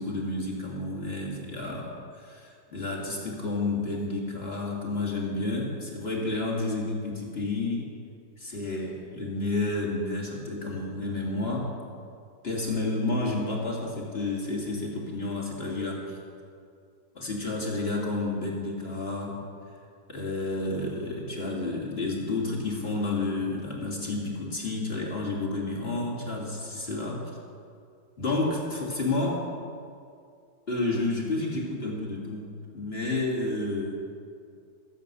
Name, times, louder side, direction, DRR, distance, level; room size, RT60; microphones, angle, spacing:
voice 1, 0.0-7.9 8.4-11.7 12.4-16.2 17.1-19.4 20.1-27.2 28.2-29.5 30.7-32.5 32.7-34.0, left 2 dB, 35° left, -3 dB, 2.4 m, -30 dB
15.5 x 7.6 x 6.8 m, 2.3 s
omnidirectional pair, 1.9 m